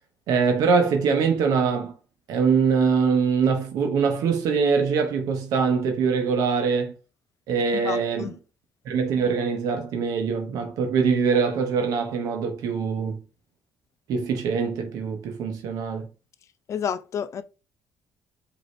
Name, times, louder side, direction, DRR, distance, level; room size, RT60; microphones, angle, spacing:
voice 1, 0.3-1.9 2.3-6.9 7.5-8.4 8.8-13.2 14.1-16.1, right 5 dB, 75° right, 0.8 m, -23 dB
voice 2, 7.8-8.3 16.7-17.4, left 8 dB, 55° left, 0.5 m, -30 dB
4.9 x 2.7 x 3.1 m
supercardioid pair, 65°, 6 cm